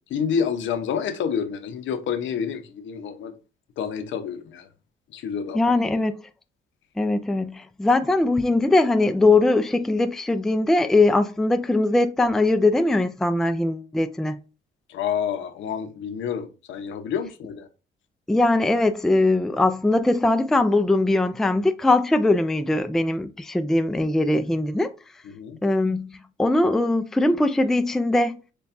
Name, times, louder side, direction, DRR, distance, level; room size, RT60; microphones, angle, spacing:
voice 1, 0.1-3.3 3.8-4.7 5.1-5.6 5.9-6.0 14.9-17.7 25.2-25.6, left 7 dB, 75° left, 0.7 m, -28 dB
voice 2, 5.5-6.1 7.0-14.4 18.3-24.9 25.6-28.4, left 2 dB, ahead, 0.3 m, -21 dB
6.8 x 2.3 x 2.5 m
cardioid pair, 90°, 20 cm